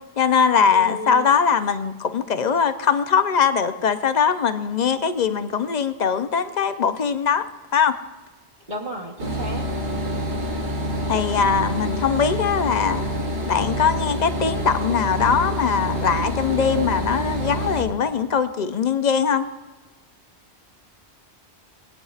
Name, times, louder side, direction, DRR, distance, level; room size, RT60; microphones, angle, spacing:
voice 1, 0.2-7.4 7.7-8.0 10.1-10.4 11.1-13.0 13.5-19.5, left 6 dB, 50° left, 10 dB, 0.6 m, -21 dB
voice 2, 0.7-1.3 8.7-9.7, equal, 45° right, -2 dB, 1.3 m, -33 dB
sound 1, 9.2-17.8, equal, 85° right, 1.8 m, -27 dB
20.5 x 9.1 x 2.4 m, 1.2 s
omnidirectional pair, 1.1 m